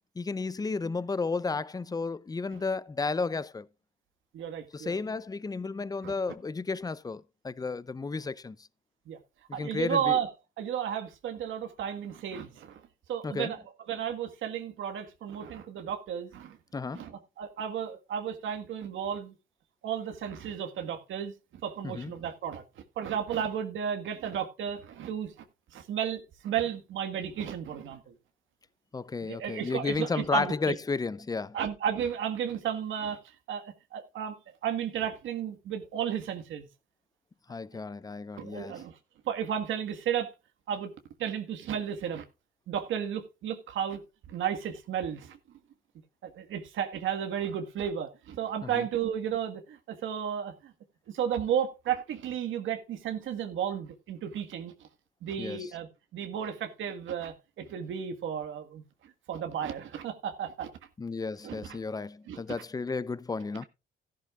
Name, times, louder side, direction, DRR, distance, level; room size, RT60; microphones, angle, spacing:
voice 1, 0.2-3.7 4.7-8.6 9.5-10.2 13.2-13.5 16.7-17.1 21.8-22.1 28.9-31.6 37.5-38.7 48.6-48.8 55.4-55.7 61.0-63.7, left 4 dB, 20° left, 0.6 m, -33 dB
voice 2, 4.3-5.0 6.0-6.1 9.1-9.2 9.5-10.3 10.6-12.8 13.1-13.6 13.9-16.6 16.9-17.1 17.4-19.3 19.8-21.3 21.6-22.6 23.0-25.3 25.7-28.1 29.2-30.7 31.5-33.2 33.5-34.4 34.6-36.7 38.4-38.9 39.2-40.3 40.7-40.9 41.2-42.2 42.7-44.0 44.3-45.4 46.2-50.7 51.1-54.7 55.2-58.8 59.3-60.7 61.4-61.8 62.3-62.4, right 8 dB, 75° right, 1.7 m, -33 dB
14.0 x 11.5 x 2.4 m
cardioid pair, 90°, 20 cm